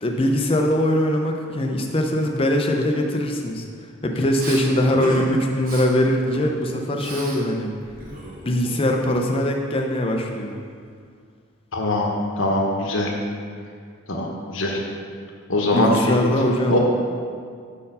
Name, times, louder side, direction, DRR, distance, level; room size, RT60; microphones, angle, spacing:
voice 1, 0.0-3.6 4.0-7.7 8.4-10.6 15.7-16.8, equal, 25° left, 2 dB, 0.5 m, -22 dB
Respiratory sounds, 4.4-4.6 5.0-5.3 5.6-5.9 6.3-7.4 7.7-9.1, right 1 dB, 40° right, 1.0 m, -35 dB
voice 2, 11.7-12.1 12.4-13.1 14.1-14.8 15.5-16.2 16.7-16.8, left 1 dB, 65° left, 0 dB, 0.9 m, -22 dB
5.3 x 4.4 x 5.4 m, 2.1 s
head